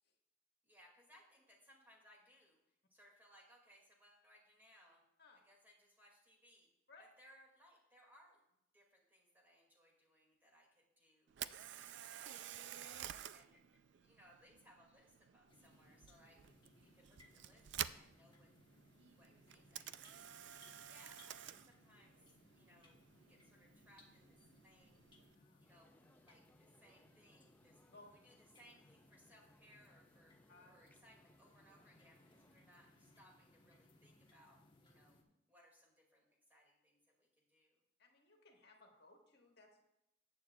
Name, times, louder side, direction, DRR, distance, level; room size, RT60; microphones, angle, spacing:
voice 1, 0.6-5.0 5.4-6.7 7.0-8.4 8.7-11.8 12.2-16.4 16.8-18.5 19.2-20.5 20.9-22.2 22.5-25.0 25.6-27.8 28.1-30.3 30.7-35.2 35.5-37.8, equal, 10° right, -2 dB, 2.3 m, -67 dB
Camera, 11.3-25.3, right 11 dB, 60° right, 0.3 m, -51 dB
sound 1, 15.5-35.2, left 2 dB, 25° left, 1.1 m, -68 dB
sound 2, 25.6-32.6, left 1 dB, 10° left, 0.5 m, -72 dB
voice 2, 38.0-39.8, left 3 dB, 55° left, 1 dB, 1.7 m, -63 dB
14.5 x 9.0 x 2.4 m, 0.86 s
head